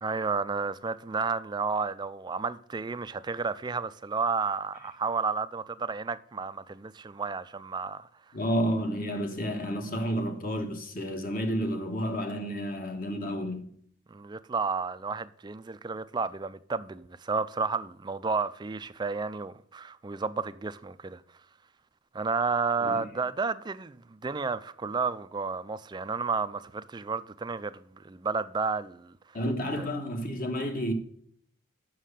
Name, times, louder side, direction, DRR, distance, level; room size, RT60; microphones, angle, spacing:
voice 1, 0.0-8.1 14.1-21.2 22.1-29.1 29.8-29.9, right 4 dB, 20° right, 0.3 m, -32 dB
voice 2, 8.3-13.7 22.8-23.1 29.3-30.9, equal, 45° left, 1.2 m, -31 dB
7.5 x 6.3 x 6.6 m
head